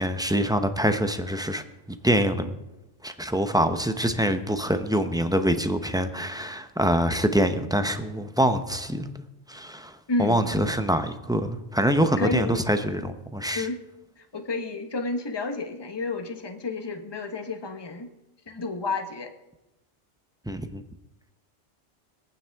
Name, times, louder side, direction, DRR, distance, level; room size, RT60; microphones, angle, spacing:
voice 1, 0.0-2.5 3.0-13.7 20.5-20.8, right 1 dB, 5° right, 0.5 m, -25 dB
voice 2, 10.1-10.4 12.2-12.6 13.5-13.8 14.3-18.1 18.5-19.3, left 3 dB, 25° left, 1.0 m, -30 dB
24.5 x 9.1 x 3.5 m
omnidirectional pair, 1.2 m